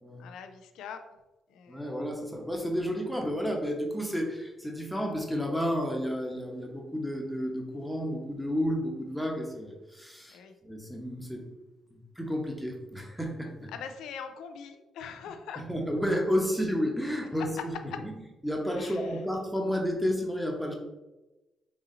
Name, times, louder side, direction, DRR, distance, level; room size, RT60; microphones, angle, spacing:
voice 1, 0.2-1.0 1.5-1.9 10.3-10.5 13.7-15.6 18.7-19.2, left 7 dB, 85° left, 7 dB, 0.4 m, -43 dB
voice 2, 1.7-10.4 10.6-11.4 11.9-13.7 15.6-17.7 18.4-20.7, equal, ahead, 1 dB, 0.9 m, -31 dB
4.1 x 2.8 x 3.8 m, 1.1 s
cardioid pair, 90°, 0 cm